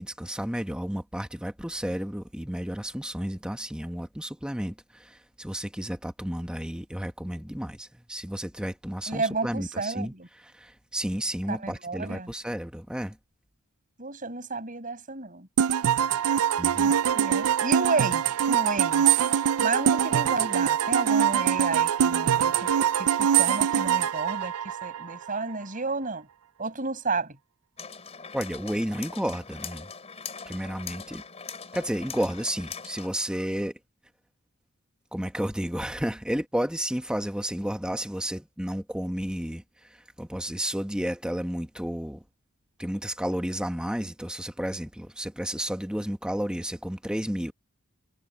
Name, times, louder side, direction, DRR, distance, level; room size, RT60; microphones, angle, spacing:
voice 1, 0.0-10.1 10.4-13.2 16.6-16.9 28.3-29.9 30.5-31.2 31.7-33.8 35.1-39.6 39.9-42.2 42.8-47.5, equal, 5° right, 1.2 m, -32 dB
voice 2, 9.1-10.3 11.5-12.3 14.0-15.5 17.1-19.1 19.6-22.7 23.0-26.3 26.6-27.4, right 3 dB, 40° right, 6.3 m, -31 dB
sound 1, 15.6-25.3, right 9 dB, 80° right, 0.4 m, -23 dB
sound 2, 27.8-33.1, left 6 dB, 30° left, 3.5 m, -41 dB
head